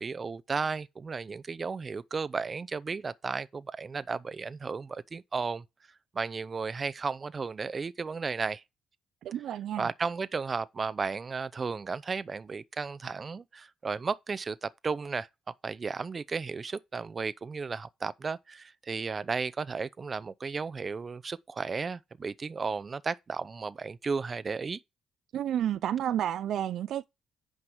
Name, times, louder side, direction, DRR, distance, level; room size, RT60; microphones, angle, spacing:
voice 1, 0.0-5.6 6.1-8.6 9.8-15.3 15.6-24.8, right 4 dB, 35° right, 0.7 m, -34 dB
voice 2, 9.2-9.9 25.3-27.0, right 10 dB, 75° right, 0.4 m, -30 dB
9.8 x 5.3 x 4.5 m
cardioid pair, 90°, 0 cm